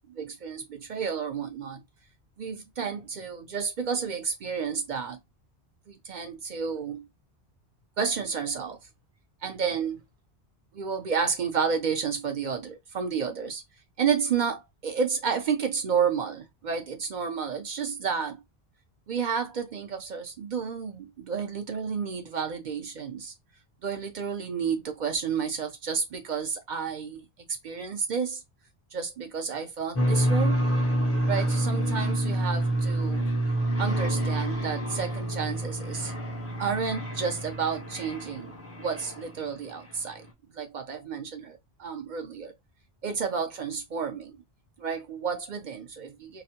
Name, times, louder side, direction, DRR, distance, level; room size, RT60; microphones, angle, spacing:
voice 1, 0.1-1.8 2.4-5.2 5.9-7.1 8.0-8.8 9.4-10.0 10.7-13.6 14.0-18.4 19.1-23.3 23.8-27.2 27.6-28.4 28.9-30.7 31.3-33.3 33.8-36.1 36.6-38.5 38.8-40.2 40.5-42.5 43.0-44.4 44.8-46.4, right 6 dB, 55° right, 0.6 m, -31 dB
sound 1, 30.0-39.5, right 1 dB, 20° left, 0.5 m, -28 dB
2.4 x 2.1 x 2.7 m
omnidirectional pair, 1.1 m